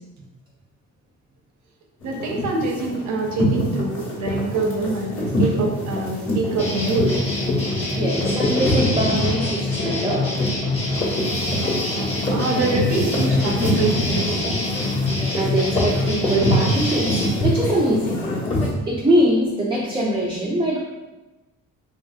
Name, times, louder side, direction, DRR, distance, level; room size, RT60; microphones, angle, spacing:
sound 1, 2.0-18.7, left 1 dB, 45° left, 1.0 m, -24 dB
voice 1, 2.0-7.1 12.3-14.5, right 3 dB, 70° right, 1 dB, 0.7 m, -25 dB
sound 2, 6.6-17.3, left 2 dB, 20° left, 0.8 m, -26 dB
voice 2, 8.0-10.3 15.4-18.2 18.6-20.8, right 1 dB, 15° right, -3 dB, 0.4 m, -23 dB
3.0 x 2.6 x 2.3 m, 1.1 s
cardioid pair, 90°, 30 cm